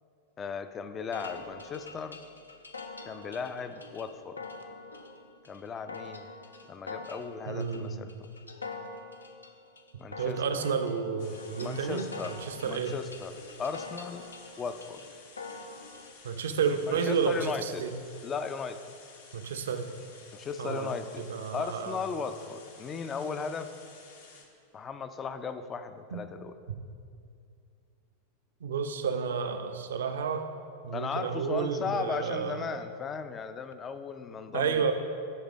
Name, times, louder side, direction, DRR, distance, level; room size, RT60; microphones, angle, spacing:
voice 1, 0.4-2.2 3.1-4.5 5.5-6.3 6.7-8.3 10.0-10.4 11.6-12.3 12.6-14.2 14.6-15.0 16.9-17.8 18.2-18.8 20.3-21.3 21.5-23.7 24.7-26.6 30.9-34.9, left 5 dB, 25° left, 10 dB, 0.4 m, -36 dB
sound 1, 1.1-16.1, left 3 dB, 80° left, 0.5 m, -45 dB
voice 2, 7.5-8.0 10.1-12.9 16.2-17.9 19.3-19.9 20.6-22.0 26.1-26.2 28.6-30.5 30.8-32.7 34.5-34.9, right 6 dB, 60° right, 7 dB, 0.5 m, -31 dB
sound 2, 11.2-24.4, left 4 dB, 55° left, 0.8 m, -53 dB
9.6 x 3.3 x 5.0 m, 2.4 s
figure-of-eight pair, 90°, 0 cm